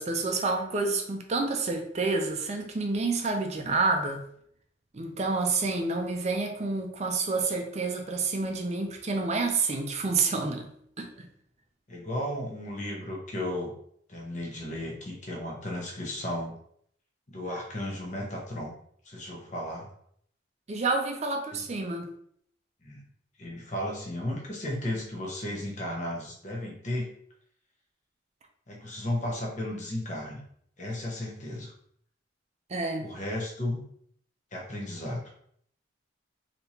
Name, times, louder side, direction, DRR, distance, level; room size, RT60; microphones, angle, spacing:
voice 1, 0.0-4.3 4.9-10.7 11.0-11.3 20.7-22.1 32.7-33.1, right 3 dB, 35° right, 4 dB, 0.5 m, -29 dB
voice 2, 11.9-13.7 14.1-16.5 17.3-18.7 19.0-19.9 21.5-21.6 22.8-23.0 23.4-27.1 28.7-30.4 30.8-31.7 33.0-33.8 34.5-35.2, left 1 dB, 40° left, -2 dB, 0.8 m, -34 dB
3.5 x 2.9 x 2.8 m, 0.66 s
head